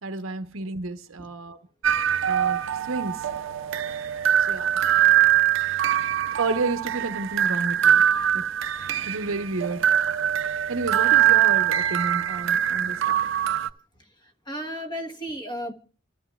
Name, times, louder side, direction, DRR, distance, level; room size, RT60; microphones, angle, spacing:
voice 1, 0.0-1.6 2.3-2.6 2.9-3.2 4.5-4.7 6.4-8.0 8.3-8.4 9.1-9.8 10.7-13.1, right 3 dB, 85° right, 0.9 m, -30 dB
sound 1, 1.8-13.7, right 10 dB, 65° right, 0.6 m, -23 dB
voice 2, 14.5-15.7, equal, 20° left, 1.3 m, -33 dB
29.5 x 13.0 x 2.3 m
head